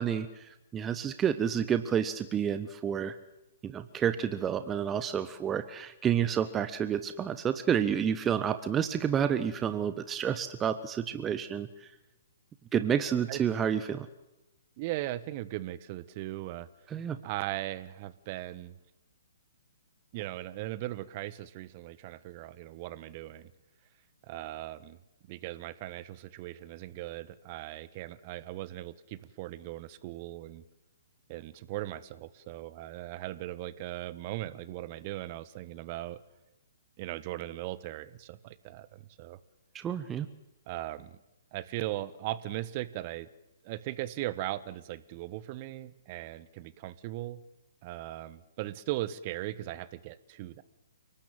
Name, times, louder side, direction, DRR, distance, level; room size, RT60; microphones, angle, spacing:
voice 1, 0.0-3.2 3.6-11.9 12.7-14.1 16.9-17.2 39.7-40.3, right 8 dB, 15° right, 10 dB, 1.1 m, -30 dB
voice 2, 14.8-16.7 17.2-18.8 20.1-23.5 24.3-25.0 25.3-30.6 31.3-36.2 37.0-39.4 40.7-41.2 41.5-43.3 43.6-47.4 47.8-50.6, right 15 dB, 30° right, 16 dB, 1.3 m, -38 dB
30.0 x 19.0 x 8.8 m, 0.98 s
figure-of-eight pair, 125°, 0 cm